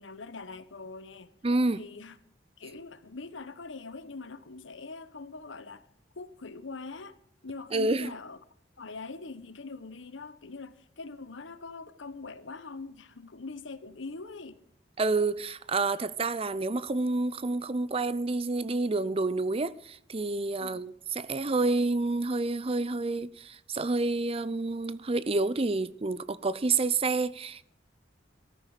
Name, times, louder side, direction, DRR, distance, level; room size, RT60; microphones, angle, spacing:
voice 1, 0.0-1.3 1.7-2.2 2.6-5.9 6.1-7.2 7.4-8.4 8.8-14.6 20.6-20.9, left 3 dB, 90° left, 1.1 m, -43 dB
voice 2, 1.4-1.8 7.7-8.1 15.0-27.6, right 3 dB, 30° right, 0.6 m, -29 dB
16.0 x 14.0 x 5.0 m
head